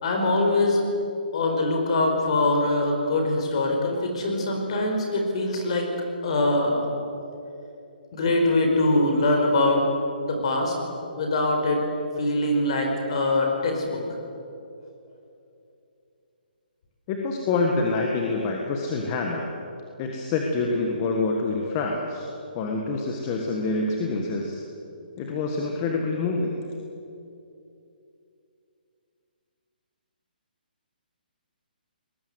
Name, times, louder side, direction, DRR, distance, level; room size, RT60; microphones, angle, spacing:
voice 1, 0.0-0.8 1.3-5.9 6.2-6.9 8.1-9.8 10.2-10.7 11.2-11.8 12.2-14.0, left 2 dB, 35° left, 2 dB, 4.8 m, -23 dB
voice 2, 17.1-19.5 20.0-22.3 22.5-24.6 25.2-26.5, left 3 dB, 20° left, 1 dB, 1.5 m, -26 dB
24.0 x 20.5 x 8.0 m, 2.7 s
hypercardioid pair, 175°, 5 cm